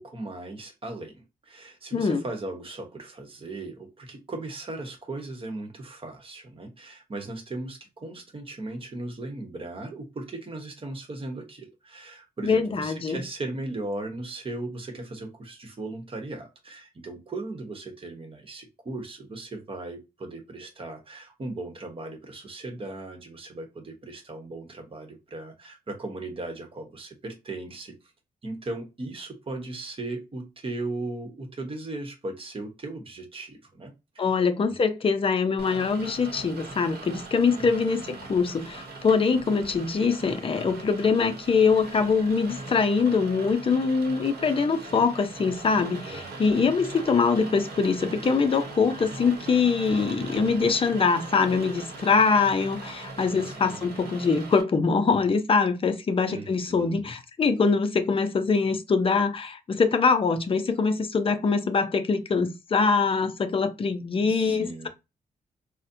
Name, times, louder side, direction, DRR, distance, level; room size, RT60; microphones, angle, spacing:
voice 1, 0.0-28.0 28.4-34.8 37.5-38.2 46.0-46.6 53.3-53.9 56.2-57.1 64.2-64.9, right 2 dB, 35° right, 1.0 m, -37 dB
voice 2, 1.9-2.2 12.4-13.2 34.2-64.9, left 5 dB, 35° left, 0.5 m, -23 dB
Rain, 35.6-54.6, right 3 dB, 85° right, 0.9 m, -40 dB
4.0 x 2.1 x 2.6 m
wide cardioid pair, 120°, 16 cm